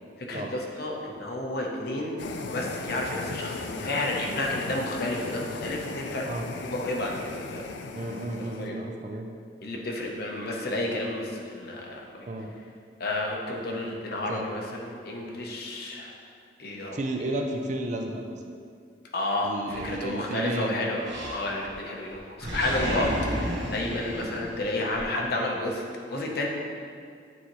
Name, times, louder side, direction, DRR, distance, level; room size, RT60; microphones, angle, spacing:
voice 1, 0.2-6.3 6.6-7.7 8.6-8.8 9.6-12.3 13.0-16.2 16.6-17.0 19.1-23.1 23.7-25.8 26.1-26.5, left 1 dB, 55° left, 0 dB, 0.8 m, -31 dB
sound 1, 2.2-8.7, left 3 dB, 70° left, 0.4 m, -37 dB
voice 2, 7.9-9.3 12.3-12.5 14.3-14.5 16.9-18.4 19.4-20.8 22.7-23.4, right 1 dB, 40° right, 3 dB, 0.5 m, -33 dB
Animal, 19.7-20.5 21.0-21.8 22.1-25.0, equal, 70° right, 1.2 m, -33 dB
8.9 x 4.2 x 3.1 m, 2.2 s
head